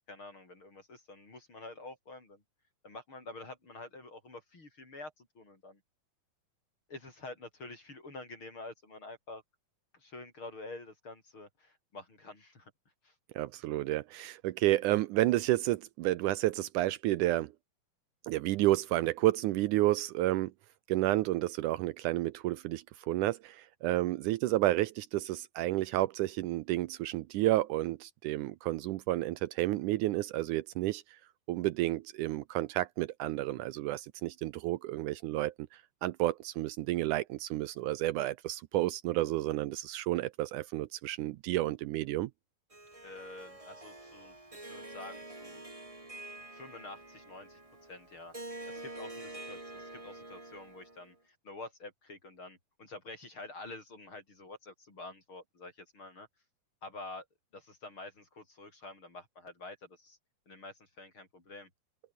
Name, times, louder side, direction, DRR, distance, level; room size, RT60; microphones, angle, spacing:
voice 1, 0.1-2.4 2.8-5.8 6.9-9.4 9.9-12.7 13.0-13.1 43.0-45.6 46.5-48.3 48.7-56.3 56.8-57.2 57.5-60.2 60.5-61.7, left 2 dB, 35° left, 6.7 m, -48 dB
voice 2, 13.4-17.5 18.2-20.5 20.9-31.0 31.5-35.7 36.0-42.3, right 16 dB, 80° right, 1.8 m, -31 dB
Harp, 42.7-51.1, right 2 dB, 10° right, 2.2 m, -47 dB
omnidirectional pair, 4.2 m